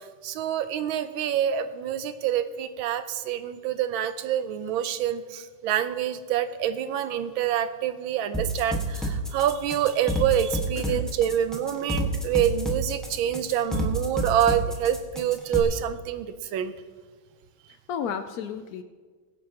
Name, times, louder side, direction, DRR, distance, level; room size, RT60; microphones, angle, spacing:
voice 1, 0.2-16.7, right 10 dB, 90° right, 11 dB, 1.5 m, -26 dB
sound 1, 8.3-15.6, right 1 dB, ahead, 1.1 m, -28 dB
voice 2, 17.7-18.8, left 7 dB, 90° left, 9 dB, 0.8 m, -33 dB
21.5 x 8.6 x 2.9 m, 1.5 s
omnidirectional pair, 2.2 m